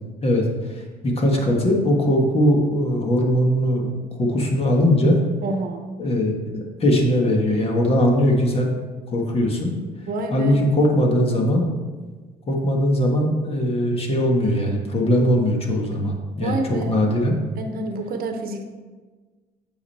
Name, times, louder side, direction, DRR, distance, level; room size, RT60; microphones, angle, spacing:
voice 1, 0.2-5.2 6.0-8.8 9.1-9.7 10.3-11.7 12.5-17.4, equal, 35° left, 1 dB, 1.6 m, -20 dB
voice 2, 5.4-5.8 10.1-10.6 16.4-16.9 17.6-18.6, right 2 dB, 60° right, 6 dB, 1.0 m, -28 dB
8.5 x 5.2 x 4.3 m, 1.4 s
cardioid pair, 110°, 17 cm